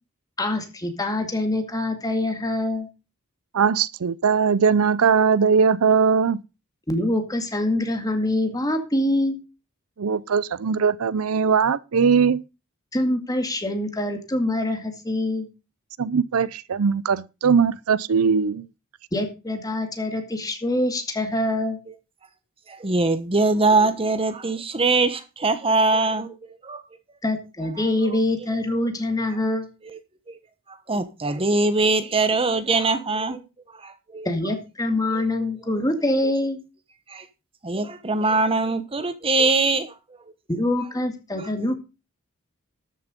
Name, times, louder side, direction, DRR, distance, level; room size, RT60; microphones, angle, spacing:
voice 1, 0.4-2.9 6.9-9.4 12.9-15.5 19.1-21.8 27.2-29.7 34.2-36.6 40.5-41.8, left 1 dB, 20° left, 2.2 m, -25 dB
voice 2, 3.5-6.4 10.0-12.4 16.0-18.7, right 6 dB, 85° right, 0.5 m, -20 dB
voice 3, 22.7-26.4 26.6-26.8 27.8-27.9 29.8-30.0 30.9-33.4 33.8-34.3 37.1-37.2 37.6-39.9 41.6-41.7, right 3 dB, 25° right, 1.1 m, -22 dB
13.5 x 7.0 x 5.2 m
head